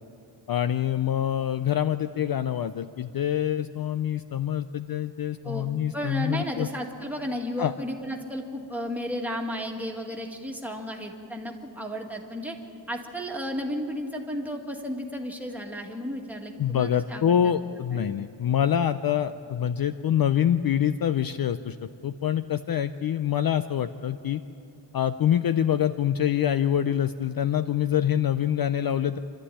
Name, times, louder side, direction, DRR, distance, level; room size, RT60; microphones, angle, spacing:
voice 1, 0.5-6.7 7.6-7.7 16.6-21.8 22.0-24.4 24.9-29.2, left 10 dB, 50° left, 12 dB, 0.5 m, -25 dB
voice 2, 5.9-12.6 12.9-17.5 17.9-18.1, equal, 5° right, 0 dB, 2.0 m, -33 dB
27.0 x 13.0 x 10.0 m, 2.7 s
wide cardioid pair, 165°, 47 cm